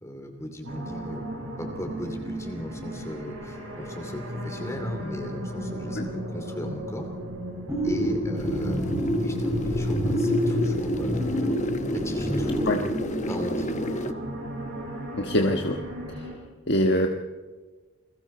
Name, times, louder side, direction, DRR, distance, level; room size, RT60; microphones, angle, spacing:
voice 1, 0.0-7.1 7.8-8.8 9.2-11.3 11.9-12.7 13.3-13.9, equal, 15° left, 4 dB, 2.7 m, -37 dB
sound 1, 0.6-16.3, equal, 70° right, 7.0 m, -34 dB
sound 2, 7.7-12.7, equal, 10° right, 6.1 m, -27 dB
sound 3, 8.3-14.1, left 1 dB, 35° left, 1.1 m, -33 dB
voice 2, 15.1-15.8 16.7-17.1, left 1 dB, 50° left, 3 dB, 1.4 m, -23 dB
29.0 x 22.0 x 4.4 m, 1.3 s
head